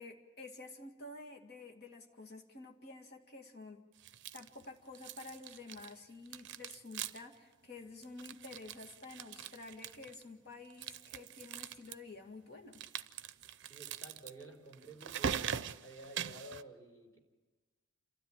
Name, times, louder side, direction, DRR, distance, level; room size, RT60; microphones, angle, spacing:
voice 1, 0.0-3.8 4.3-12.8, left 3 dB, 50° left, 3 dB, 2.1 m, -50 dB
sound 1, 4.0-4.7 4.9-6.0 6.3-7.4 7.6-7.7 8.0-10.2 10.7-11.9 12.7-16.6, right 8 dB, 55° right, 0.6 m, -42 dB
voice 2, 13.7-15.5 15.8-17.2, right 1 dB, 15° left, 1 dB, 4.1 m, -52 dB
28.0 x 13.0 x 9.0 m, 1.3 s
head